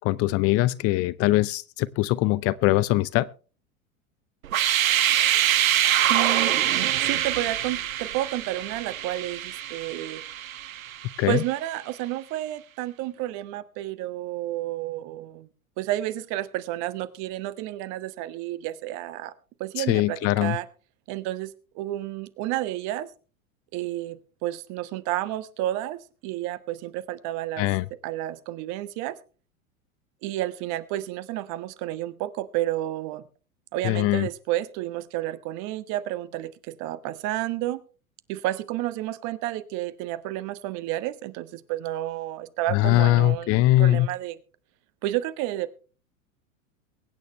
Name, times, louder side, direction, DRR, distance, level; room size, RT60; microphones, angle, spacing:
voice 1, 0.0-3.3 11.2-11.4 19.8-20.6 27.6-27.8 33.8-34.3 42.7-44.1, left 17 dB, 35° left, 0.6 m, -22 dB
sound 1, 4.4-11.3, right 11 dB, 75° right, 0.9 m, -24 dB
voice 2, 6.1-6.6 7.0-10.2 11.3-15.5 15.8-19.3 19.6-20.7 21.1-23.1 23.7-27.7 28.0-29.2 30.2-33.3 33.7-37.8 38.3-44.4 45.0-45.7, right 15 dB, 45° right, 1.2 m, -31 dB
23.0 x 9.3 x 3.2 m
hypercardioid pair, 90°, 41 cm